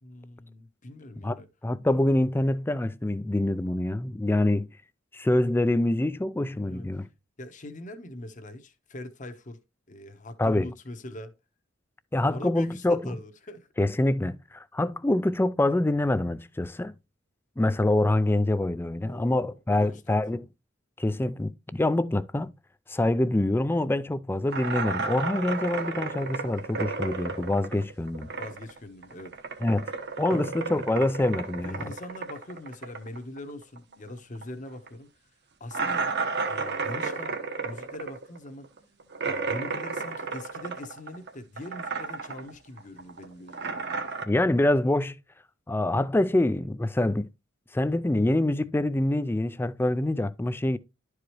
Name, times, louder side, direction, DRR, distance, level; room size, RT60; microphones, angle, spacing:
voice 1, 0.0-1.5 6.6-7.1 7.4-9.6 9.9-11.3 12.2-13.7 19.0-20.2 25.3-25.4 28.3-29.4 30.3-30.4 31.5-35.1 35.6-36.1 36.5-37.4 37.6-38.7 39.3-44.1, left 1 dB, 40° left, 1.0 m, -42 dB
voice 2, 1.6-4.7 5.1-7.1 10.4-10.7 12.1-13.0 13.8-16.9 17.6-20.5 21.0-22.5 22.9-28.3 29.6-29.9 30.2-31.9 44.3-45.2 45.7-47.3 47.7-50.8, left 1 dB, 10° left, 0.4 m, -25 dB
sound 1, 24.5-28.8 29.0-34.1 34.3-34.4 34.9-35.0 35.7-41.3 41.6-42.5 42.8-44.2, right 4 dB, 55° right, 1.0 m, -32 dB
11.5 x 4.8 x 3.0 m
head